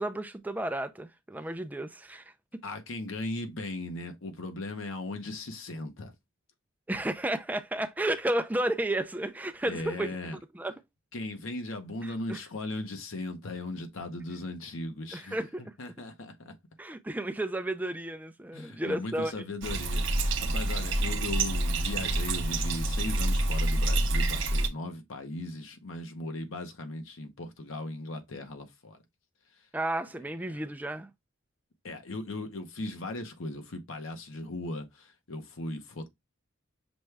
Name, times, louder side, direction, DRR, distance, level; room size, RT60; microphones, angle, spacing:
voice 1, 0.0-2.3 6.9-10.1 10.5-10.7 12.0-12.4 15.1-15.7 16.8-19.3 29.7-31.1, right 1 dB, 10° right, 0.3 m, -32 dB
voice 2, 2.6-6.1 9.6-10.4 11.1-16.5 18.5-29.0 30.5-30.6 31.8-36.1, left 2 dB, 70° left, 0.8 m, -38 dB
Bathtub (filling or washing), 19.6-24.7, right 2 dB, 60° right, 0.6 m, -27 dB
6.1 x 2.2 x 3.2 m
head